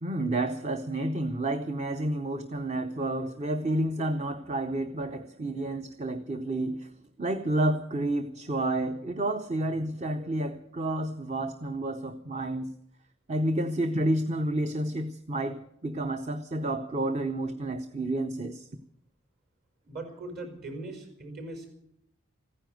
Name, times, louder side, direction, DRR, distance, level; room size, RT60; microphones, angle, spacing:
voice 1, 0.0-6.9 7.2-12.7 13.3-18.7, right 1 dB, 35° right, 9 dB, 0.7 m, -30 dB
voice 2, 19.9-21.7, right 2 dB, 50° right, 4 dB, 5.1 m, -40 dB
15.5 x 9.9 x 9.2 m, 0.73 s
head